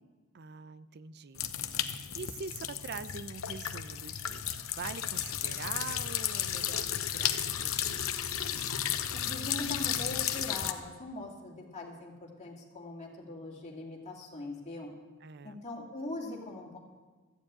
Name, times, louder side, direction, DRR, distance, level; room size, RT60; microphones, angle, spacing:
voice 1, 0.3-1.5 1.7-7.9 15.2-15.6, right 5 dB, 50° right, 15 dB, 0.5 m, -44 dB
sound 1, 1.4-10.7, left 10 dB, 75° left, 0.8 m, -33 dB
voice 2, 9.1-14.9 15.4-16.8, left 2 dB, 35° left, -2 dB, 2.5 m, -41 dB
13.5 x 7.2 x 8.7 m, 1.3 s
head